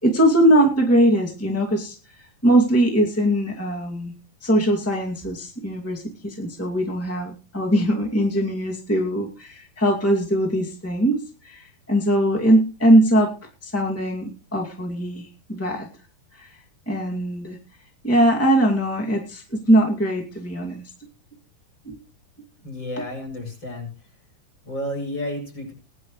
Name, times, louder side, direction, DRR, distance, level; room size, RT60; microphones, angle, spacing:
voice 1, 0.0-1.9 2.4-4.1 4.4-13.3 13.6-15.9 16.3-16.6 16.8-17.6 18.0-20.8 21.8-22.0, right 1 dB, 10° left, 0 dB, 0.9 m, -21 dB
voice 2, 22.6-23.9 24.6-25.7, left 1 dB, 25° left, 1 dB, 8.2 m, -31 dB
20.5 x 11.0 x 3.2 m, 0.36 s
omnidirectional pair, 5.0 m